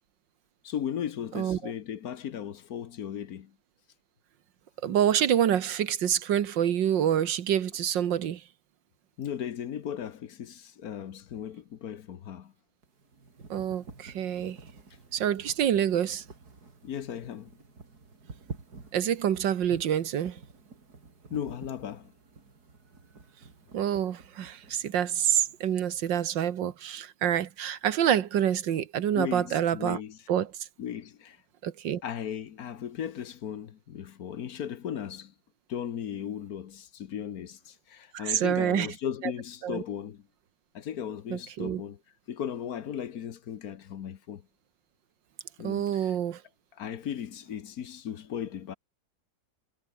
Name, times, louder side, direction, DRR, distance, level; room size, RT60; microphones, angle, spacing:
voice 1, 0.6-3.5 9.2-12.5 16.8-17.5 21.3-22.1 29.1-30.2 30.8-31.4 32.0-35.3 35.7-40.2 40.7-42.0 42.3-44.4 45.6-46.1 46.8-48.7, left 9 dB, 60° left, 1.4 m, -36 dB
voice 2, 1.3-1.7 4.8-8.4 13.5-14.6 15.1-16.2 18.9-20.4 23.7-30.0 30.3-30.5 31.6-32.0 38.1-38.9 39.2-39.3 39.6-39.8 41.3-41.8 45.6-46.4, right 10 dB, 90° right, 1.9 m, -27 dB
sound 1, 12.8-26.1, right 4 dB, 60° right, 4.0 m, -50 dB
omnidirectional pair, 1.9 m